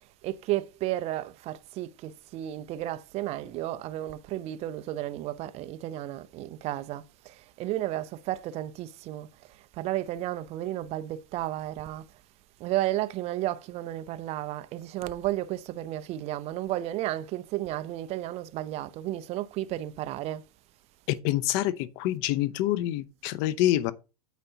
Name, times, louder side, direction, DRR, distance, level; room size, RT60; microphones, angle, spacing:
voice 1, 0.2-12.1 12.6-20.4, right 14 dB, 30° right, 0.6 m, -33 dB
voice 2, 21.1-23.9, left 14 dB, 45° left, 0.7 m, -26 dB
9.2 x 8.0 x 2.8 m
supercardioid pair, 140°, 20 cm